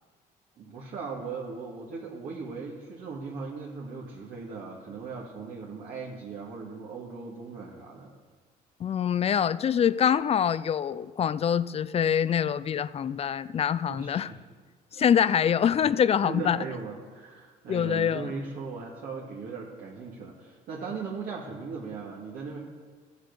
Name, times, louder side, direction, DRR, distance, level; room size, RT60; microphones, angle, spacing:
voice 1, 0.6-8.1 13.9-14.3 14.9-15.1 16.2-22.6, right 4 dB, 65° right, -4 dB, 2.1 m, -38 dB
voice 2, 8.8-14.3 14.9-16.6 17.7-18.3, left 8 dB, 35° left, 16 dB, 0.4 m, -25 dB
14.5 x 8.1 x 6.7 m, 1.5 s
cardioid pair, 110°, 17 cm